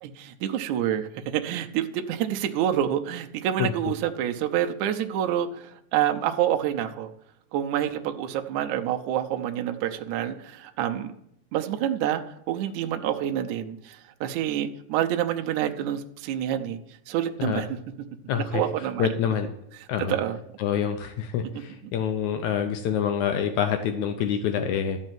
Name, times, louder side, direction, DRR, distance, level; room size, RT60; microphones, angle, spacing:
voice 1, 0.0-7.1 7.5-11.1 11.5-16.8 17.1-17.8 18.5-19.1 19.8-20.4 21.8-21.9, right 11 dB, 80° right, 6 dB, 1.8 m, -27 dB
voice 2, 18.3-18.6 19.0-19.5 19.9-20.1 20.6-25.0, left 8 dB, 90° left, 6 dB, 1.6 m, -26 dB
12.5 x 5.4 x 7.5 m, 0.77 s
omnidirectional pair, 4.3 m